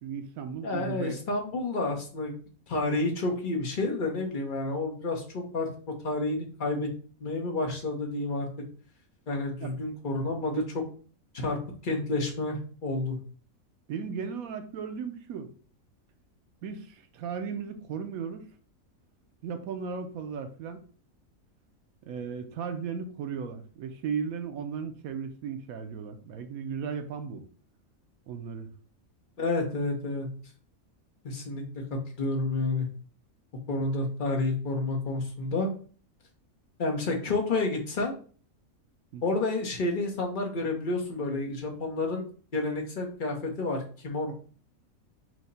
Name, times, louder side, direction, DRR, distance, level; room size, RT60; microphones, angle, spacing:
voice 1, 0.0-1.2 9.6-10.6 13.9-15.5 16.6-18.4 19.4-20.8 22.1-27.4 28.3-28.7 39.1-39.4, right 6 dB, 80° right, 1.0 m, -36 dB
voice 2, 0.6-2.4 2.7-5.7 6.0-6.9 7.2-8.5 9.3-10.6 11.3-12.6 12.8-13.2 29.4-30.3 31.2-32.9 33.7-35.7 36.8-38.2 39.2-42.2 42.5-44.3, left 2 dB, 40° left, 0.9 m, -30 dB
4.6 x 2.1 x 3.9 m
omnidirectional pair, 1.5 m